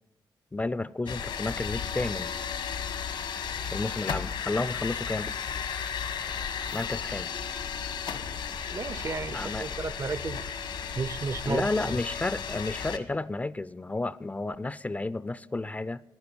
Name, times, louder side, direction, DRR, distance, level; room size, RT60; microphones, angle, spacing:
voice 1, 0.5-2.3 3.7-5.4 6.7-7.4 9.3-9.7 11.5-16.0, left 2 dB, 20° left, 0.4 m, -32 dB
sound 1, 1.1-13.0, left 7 dB, 75° left, 1.2 m, -34 dB
voice 2, 8.7-10.5 11.0-11.7, right 4 dB, 40° right, 0.5 m, -33 dB
11.5 x 10.0 x 9.5 m
cardioid pair, 80°, 8 cm